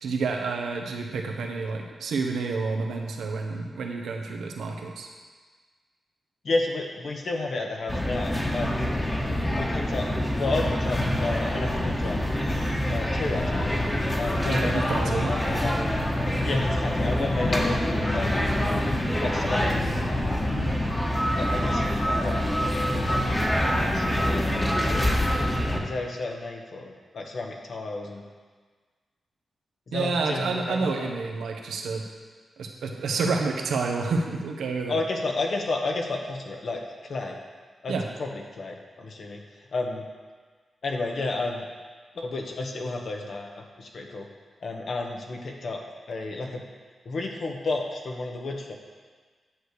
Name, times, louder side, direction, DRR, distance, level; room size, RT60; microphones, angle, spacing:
voice 1, 0.0-5.1 14.5-15.3 29.9-32.0 32.6-35.0 37.9-38.0, right 4 dB, 85° right, 2 dB, 1.1 m, -29 dB
voice 2, 6.4-8.9 9.5-10.1 10.4-12.3 12.9-13.7 14.1-15.9 16.4-18.5 19.2-19.8 21.3-21.9 22.2-23.2 23.9-25.3 25.8-28.2 29.9-31.1 34.9-37.4 37.8-37.9 38.2-40.0 40.8-41.7 42.1-44.3 44.6-45.8 46.1-46.6 47.0-48.7, left 2 dB, 65° left, 1 dB, 1.4 m, -31 dB
sound 1, 7.9-25.8, left 1 dB, 15° left, 1.4 m, -25 dB
10.0 x 6.8 x 4.9 m, 1.5 s
cardioid pair, 60°, 0 cm